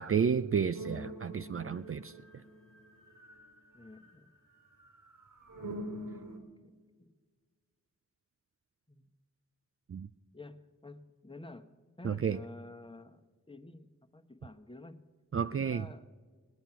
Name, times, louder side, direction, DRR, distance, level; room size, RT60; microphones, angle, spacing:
voice 1, 0.0-2.1 9.9-10.1 12.0-12.4 15.3-15.8, right 7 dB, 45° right, 10 dB, 0.4 m, -31 dB
sound 1, 0.7-4.3 4.6-6.4, right 1 dB, 85° right, 2.9 m, -45 dB
voice 2, 3.7-4.3 5.6-7.1 8.9-9.1 10.3-11.7 12.0-13.2 13.5-13.9 14.1-15.0 15.4-16.1, left 2 dB, 15° left, 7 dB, 1.0 m, -50 dB
19.0 x 9.3 x 5.8 m, 1.5 s
wide cardioid pair, 55°, 31 cm